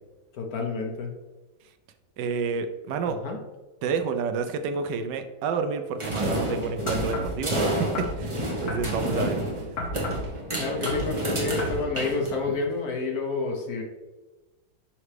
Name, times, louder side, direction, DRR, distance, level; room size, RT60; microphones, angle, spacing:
voice 1, 0.3-1.2 3.1-3.4 9.1-9.3 10.6-13.8, left 4 dB, 60° left, 2 dB, 1.2 m, -29 dB
voice 2, 2.2-3.2 3.8-9.4, right 5 dB, 75° right, 8 dB, 1.2 m, -29 dB
sound 1, 6.0-12.7, right 1 dB, 20° right, 0.8 m, -30 dB
sound 2, 6.9-7.4 8.0-9.3 9.8-10.3 10.7-11.1 11.6-11.8 12.4-12.5, left 1 dB, 45° left, 1.6 m, -32 dB
5.9 x 5.5 x 3.3 m, 1.1 s
omnidirectional pair, 2.0 m